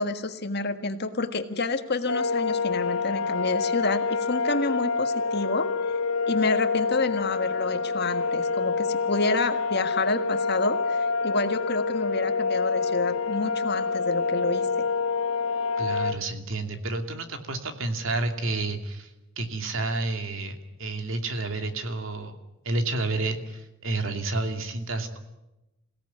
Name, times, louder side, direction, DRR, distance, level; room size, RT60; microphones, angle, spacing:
voice 1, 0.0-5.7 6.3-14.8, left 3 dB, 50° left, 8 dB, 1.7 m, -29 dB
sound 1, 2.1-16.1, left 4 dB, 75° left, 1.3 m, -27 dB
voice 2, 15.8-19.1 19.4-22.4 22.6-25.2, right 2 dB, 65° right, 6 dB, 2.6 m, -30 dB
27.5 x 17.5 x 9.6 m, 0.98 s
head